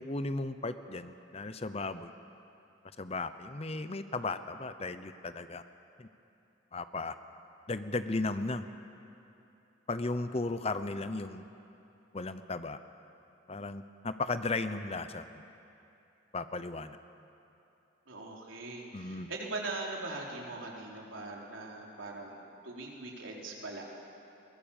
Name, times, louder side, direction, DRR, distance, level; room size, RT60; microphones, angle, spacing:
voice 1, 0.0-2.1 3.0-5.6 6.0-6.1 6.7-7.1 7.7-8.6 9.9-11.4 12.1-12.8 13.5-15.4 16.3-17.0 18.9-19.3, left 3 dB, 30° left, 11 dB, 0.7 m, -35 dB
voice 2, 18.1-23.8, right 2 dB, 80° right, -1 dB, 3.8 m, -41 dB
22.5 x 20.5 x 7.2 m, 2.9 s
head